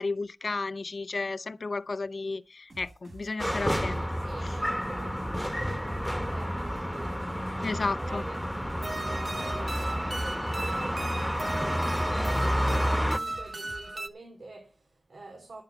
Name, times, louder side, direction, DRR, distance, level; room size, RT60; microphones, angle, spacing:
voice 1, 0.0-4.0 4.4-4.6 7.6-8.2, left 3 dB, 70° left, 0.6 m, -33 dB
sound 1, 2.7-13.9, right 2 dB, 70° right, 4.5 m, -49 dB
sound 2, 3.4-13.2, equal, 5° left, 1.1 m, -30 dB
voice 2, 4.2-15.6, right 3 dB, 90° right, 2.7 m, -46 dB
sound 3, 8.8-14.1, right 2 dB, 40° right, 1.1 m, -36 dB
14.0 x 5.5 x 6.9 m
wide cardioid pair, 55°, 0 cm